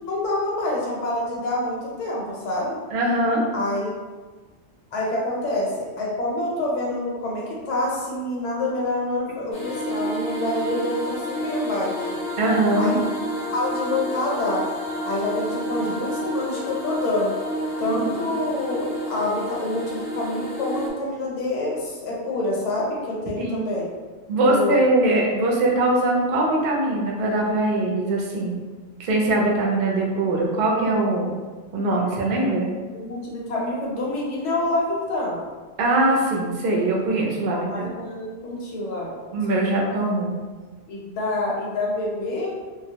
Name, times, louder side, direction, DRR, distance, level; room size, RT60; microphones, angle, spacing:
voice 1, 0.0-2.8 3.5-3.9 4.9-12.1 12.8-13.0 13.5-14.6 15.0-17.3 17.8-23.9 24.4-24.8 32.9-35.4 37.5-39.2 40.9-42.5, left 2 dB, 75° left, -4 dB, 1.0 m, -27 dB
voice 2, 2.9-3.4 12.4-12.9 15.8-15.9 17.9-18.0 18.2-18.3 23.4-23.6 24.3-28.5 29.0-31.3 31.7-32.7 35.8-37.9 39.3-40.3, right 2 dB, 60° right, -2 dB, 0.6 m, -22 dB
sound 1, 9.5-20.9, equal, 55° left, 0.6 m, -30 dB
2.3 x 2.0 x 2.7 m, 1.4 s
omnidirectional pair, 1.2 m